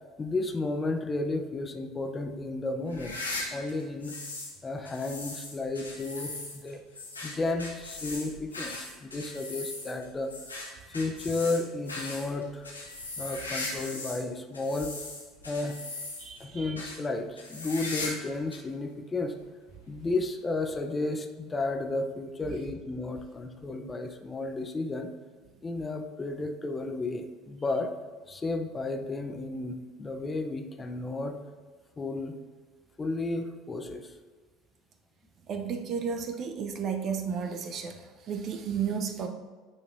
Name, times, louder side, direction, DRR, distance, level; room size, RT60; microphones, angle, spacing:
voice 1, 0.2-3.2 3.5-4.2 4.6-6.8 7.2-10.3 10.9-12.7 13.2-14.9 15.5-15.8 16.4-19.4 19.9-25.1 25.6-27.9 28.3-31.4 32.0-32.3 33.0-34.1, left 2 dB, 20° left, 5 dB, 0.6 m, -33 dB
sound 1, 2.9-4.6 4.9-14.2 14.5-16.4 16.8-17.0 17.4-18.3 18.5-18.6 19.4-19.5 20.7-20.8, left 2 dB, 85° left, 1.0 m, -39 dB
voice 2, 16.2-16.7 35.5-39.3, right 6 dB, 45° right, 6 dB, 0.6 m, -33 dB
9.6 x 4.3 x 2.6 m, 1.5 s
figure-of-eight pair, 65°, 0 cm